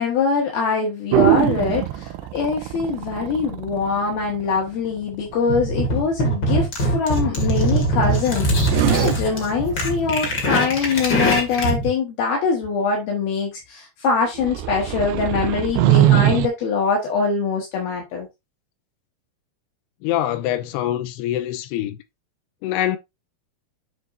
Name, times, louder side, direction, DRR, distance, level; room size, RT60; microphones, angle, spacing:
voice 1, 0.0-18.3, left 5 dB, 70° left, 3.3 m, -23 dB
sound 1, 1.1-5.4 8.6-11.0 14.3-16.5, right 14 dB, 90° right, 2.8 m, -22 dB
sound 2, 5.5-11.9, right 1 dB, 40° left, 2.1 m, -22 dB
voice 2, 20.0-22.0 22.6-23.0, left 12 dB, 85° left, 2.7 m, -24 dB
9.4 x 5.4 x 2.6 m
omnidirectional pair, 4.7 m